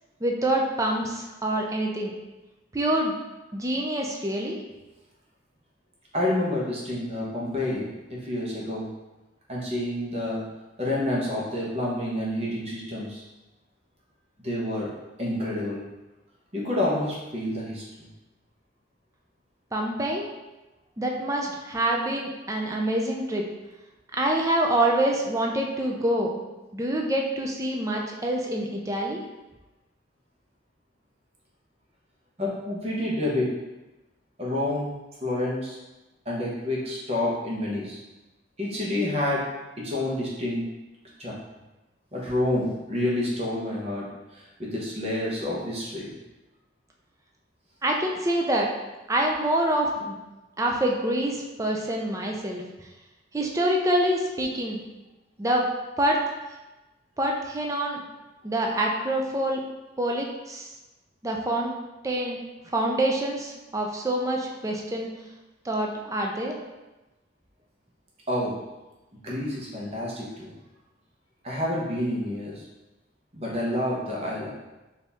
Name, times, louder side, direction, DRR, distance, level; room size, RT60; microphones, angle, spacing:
voice 1, 0.2-2.1 2.7-3.1 3.5-4.6 19.7-20.2 21.0-23.4 24.2-26.5 26.7-29.2 47.8-48.7 49.1-50.2 50.6-52.7 53.3-54.8 55.4-55.6 56.0-56.2 57.2-58.0 58.4-59.6 60.0-60.7 61.2-61.7 62.0-62.4 62.7-65.1 65.6-66.6, right 1 dB, 15° right, 0 dB, 0.4 m, -26 dB
voice 2, 6.1-8.9 9.5-10.4 10.8-13.2 14.4-14.9 15.2-15.8 16.5-17.8 32.4-33.5 34.4-34.9 35.2-35.8 36.2-38.0 38.6-39.4 39.8-40.6 41.2-41.3 42.1-44.1 44.3-46.1 68.3-68.5 69.2-70.5 71.4-72.6 73.3-74.5, left 1 dB, 30° right, -4 dB, 1.0 m, -28 dB
4.3 x 2.7 x 3.5 m, 1.1 s
head